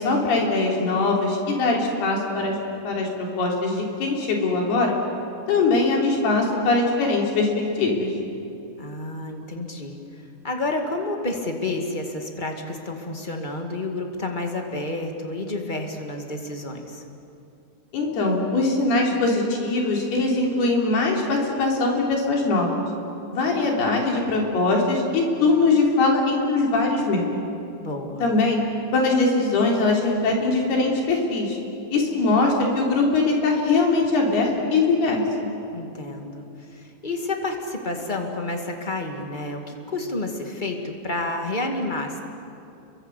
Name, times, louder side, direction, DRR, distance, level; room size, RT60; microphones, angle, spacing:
voice 1, 0.0-2.6 2.8-5.0 5.5-8.1 17.9-22.7 23.3-27.2 28.2-28.6 28.9-31.6 31.9-35.2, left 3 dB, 80° left, 0 dB, 5.6 m, -21 dB
voice 2, 8.8-10.0 10.4-17.0 27.8-28.2 35.7-42.2, left 2 dB, 25° left, 3 dB, 1.1 m, -30 dB
30.0 x 23.0 x 8.3 m, 2.6 s
omnidirectional pair, 4.5 m